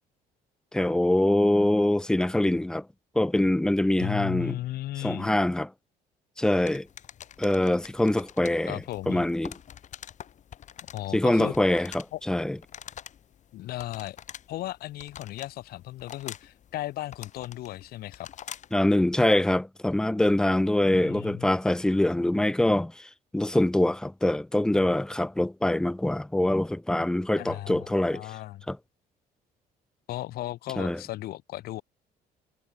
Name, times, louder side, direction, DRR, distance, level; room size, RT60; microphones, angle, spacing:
voice 1, 0.7-2.9 3.2-4.6 5.0-5.7 6.4-6.9 7.4-9.6 11.1-12.6 18.7-28.3 28.7-28.8 30.8-31.0, left 1 dB, 5° left, 0.4 m, -24 dB
voice 2, 4.0-5.3 8.7-9.2 10.9-11.8 12.1-12.2 13.5-14.2 14.5-18.3 21.0-21.5 27.4-28.6 30.1-31.8, left 15 dB, 65° left, 0.6 m, -36 dB
sound 1, 6.7-18.8, left 9 dB, 45° left, 1.1 m, -46 dB
cardioid pair, 110°, 17 cm